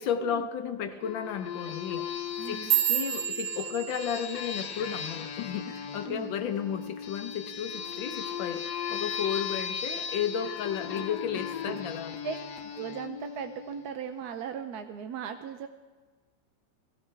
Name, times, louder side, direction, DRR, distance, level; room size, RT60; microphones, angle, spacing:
voice 1, 0.0-2.1 2.5-12.1, left 8 dB, 90° left, 8 dB, 1.6 m, -33 dB
sound 1, 1.0-14.2, left 7 dB, 65° left, 1.2 m, -37 dB
sound 2, 2.3-6.7 7.0-7.4 7.8-8.2 8.6-8.8 9.4-9.8 10.2-11.0 11.4-11.8 12.6-12.7, right 12 dB, 40° right, 2.7 m, -32 dB
voice 2, 2.4-2.7 6.1-6.3 10.9-11.2 11.6-11.8 12.2-12.4 12.7-15.7, right 7 dB, 70° right, 7 dB, 1.0 m, -38 dB
19.5 x 16.5 x 3.4 m, 1.4 s
omnidirectional pair, 2.0 m